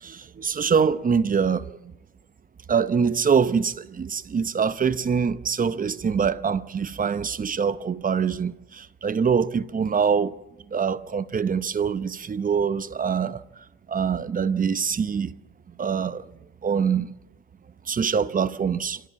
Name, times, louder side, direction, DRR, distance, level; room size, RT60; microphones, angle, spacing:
voice 1, 0.0-1.7 2.7-10.3 10.7-13.4 13.9-15.3 15.8-16.3 16.6-17.1 17.9-19.0, right 6 dB, 25° right, 0.8 m, -24 dB
27.0 x 13.0 x 8.5 m
cardioid pair, 110°, 37 cm